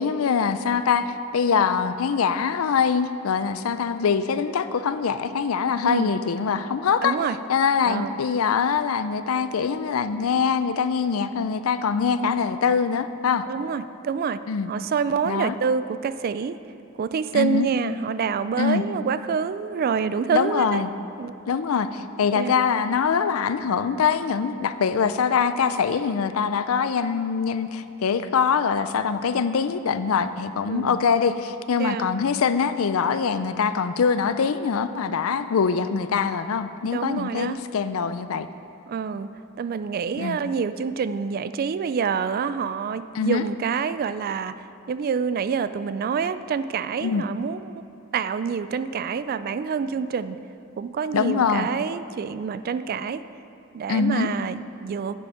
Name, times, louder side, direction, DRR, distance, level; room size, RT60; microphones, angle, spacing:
voice 1, 0.0-7.2 7.5-13.5 14.5-14.7 15.2-15.5 17.3-17.7 18.6-18.8 20.3-20.9 21.5-38.5 40.2-40.4 43.1-43.4 47.0-47.2 51.1-51.7 53.9-54.3, left 6 dB, 80° left, 12 dB, 0.4 m, -23 dB
voice 2, 5.8-6.2 7.0-7.4 7.9-8.2 12.2-12.4 13.5-14.4 14.7-16.6 17.0-20.9 21.2-21.3 22.3-22.6 30.7-31.0 31.8-32.1 35.1-35.2 36.8-37.6 38.9-47.8 48.1-50.4 50.8-53.2 53.7-55.1, right 6 dB, 45° right, 13 dB, 0.3 m, -27 dB
10.0 x 7.7 x 4.9 m, 2.7 s
head